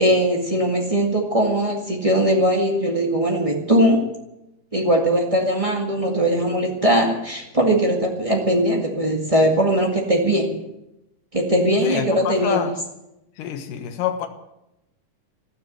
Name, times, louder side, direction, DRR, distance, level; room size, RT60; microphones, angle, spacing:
voice 1, 0.0-4.1 4.7-10.6 11.3-12.7, right 1 dB, 50° right, 0.4 m, -20 dB
voice 2, 11.8-12.8 13.4-14.3, left 8 dB, 65° left, 2.7 m, -27 dB
14.0 x 12.5 x 8.0 m
omnidirectional pair, 4.4 m